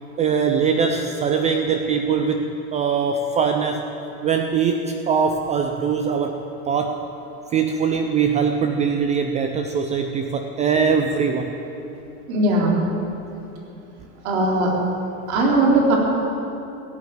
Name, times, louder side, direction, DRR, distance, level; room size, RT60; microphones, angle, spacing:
voice 1, 0.2-3.9 4.2-7.1 7.5-11.6, right 6 dB, 20° right, 5 dB, 0.4 m, -22 dB
voice 2, 12.3-12.7 14.2-14.7 15.3-16.0, right 2 dB, 70° right, -2 dB, 4.1 m, -18 dB
16.0 x 8.0 x 9.4 m, 2.9 s
supercardioid pair, 140°, 43 cm